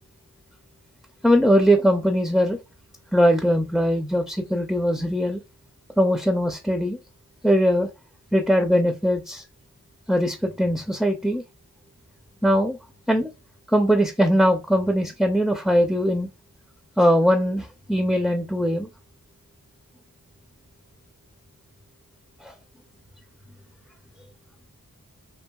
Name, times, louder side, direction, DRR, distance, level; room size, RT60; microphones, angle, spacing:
voice 1, 1.2-2.6 3.1-5.4 6.0-7.0 7.4-7.9 8.3-9.4 10.1-11.4 12.4-12.8 13.1-13.3 13.7-16.3 17.0-18.9 22.4-22.5, equal, ahead, 0.3 m, -20 dB
2.6 x 2.6 x 2.2 m
wide cardioid pair, 60°, 36 cm